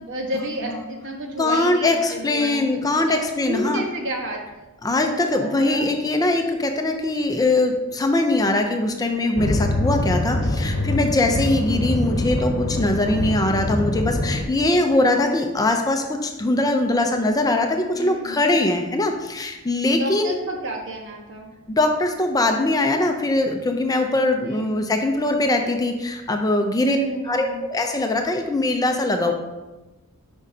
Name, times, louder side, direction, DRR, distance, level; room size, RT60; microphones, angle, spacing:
voice 1, 0.0-3.2 3.5-4.4 5.0-5.9 17.9-18.4 19.9-21.5 24.4-24.8 26.8-27.6, right 1 dB, 55° right, 0 dB, 1.3 m, -31 dB
voice 2, 1.4-3.8 4.8-20.3 21.7-27.0 27.3-29.3, left 2 dB, 15° left, 4 dB, 0.5 m, -21 dB
sound 1, 9.4-14.4, left 1 dB, 50° left, 1.0 m, -24 dB
10.0 x 5.2 x 2.7 m, 1.1 s
head